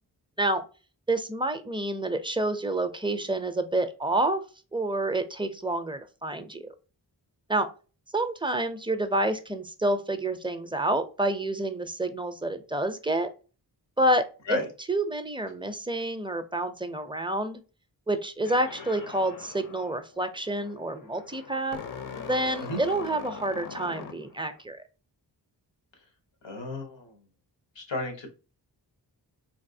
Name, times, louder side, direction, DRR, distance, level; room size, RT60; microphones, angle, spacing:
voice 1, 1.1-4.4 4.7-6.7 7.5-7.7 8.1-13.3 14.0-14.6 14.9-17.6 18.1-21.8 22.2-24.8, right 1 dB, 10° right, 9 dB, 0.4 m, -28 dB
sound 1, 18.4-24.6, left 6 dB, 50° left, 0.6 m, -42 dB
voice 2, 26.4-27.2 27.8-28.3, left 2 dB, 85° left, 4 dB, 1.1 m, -33 dB
3.5 x 2.6 x 2.6 m, 0.34 s
wide cardioid pair, 85°, 43 cm